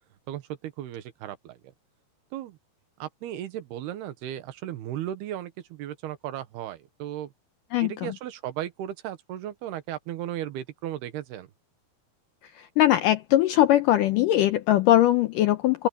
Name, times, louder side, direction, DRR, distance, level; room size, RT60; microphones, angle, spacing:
voice 1, 0.3-1.6 2.3-2.6 3.0-7.3 7.8-11.5, right 12 dB, 80° right, 3.3 m, -35 dB
voice 2, 7.7-8.1 12.6-15.9, left 13 dB, 85° left, 1.9 m, -21 dB
open air
omnidirectional pair, 4.6 m